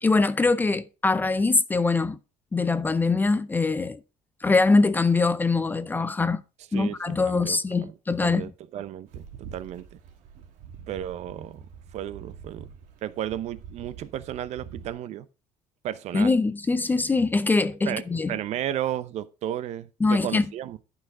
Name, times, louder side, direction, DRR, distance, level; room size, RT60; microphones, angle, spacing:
voice 1, 0.0-2.2 2.5-4.0 4.4-6.4 6.7-8.5 16.1-18.4 20.0-20.5, left 3 dB, 15° left, 0.5 m, -23 dB
voice 2, 6.7-7.9 8.2-9.8 10.9-11.6 11.9-12.7 13.0-15.3 15.8-16.3 17.9-20.8, right 11 dB, 55° right, 0.7 m, -33 dB
sound 1, 9.1-14.9, right 7 dB, 80° right, 2.1 m, -45 dB
11.5 x 5.8 x 3.8 m
cardioid pair, 160°, 13 cm